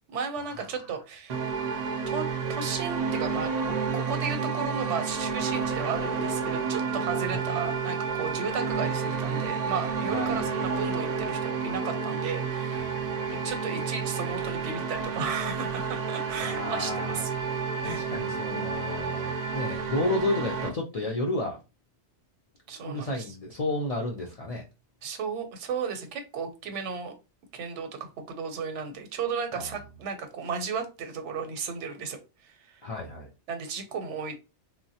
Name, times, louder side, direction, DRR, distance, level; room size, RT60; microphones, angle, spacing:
voice 1, 0.1-1.3 2.1-12.9 13.3-17.3 17.8-18.0 22.7-23.2 25.0-27.1 27.5-32.8 33.5-34.4, right 5 dB, 85° right, 7 dB, 0.9 m, -34 dB
sound 1, 1.3-20.7, right 5 dB, 55° right, 0.4 m, -30 dB
voice 2, 10.1-10.5 12.7-13.5 16.4-17.2 17.8-21.6 22.8-24.7 29.6-29.7 32.8-33.3, left 2 dB, 70° left, -1 dB, 0.3 m, -32 dB
3.1 x 2.1 x 2.7 m, 0.29 s
omnidirectional pair, 1.2 m